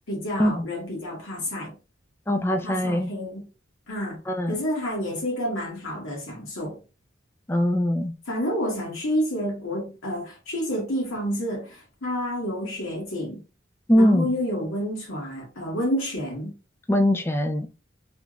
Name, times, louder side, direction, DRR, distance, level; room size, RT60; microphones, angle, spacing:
voice 1, 0.1-1.7 2.5-3.4 3.9-4.2 4.5-6.8 8.3-13.4 13.9-16.6, equal, 85° left, 1.5 m, -29 dB
voice 2, 2.3-3.1 4.3-4.6 7.5-8.1 13.9-14.3 16.9-17.7, left 1 dB, 10° left, 0.3 m, -21 dB
3.3 x 2.4 x 3.0 m
head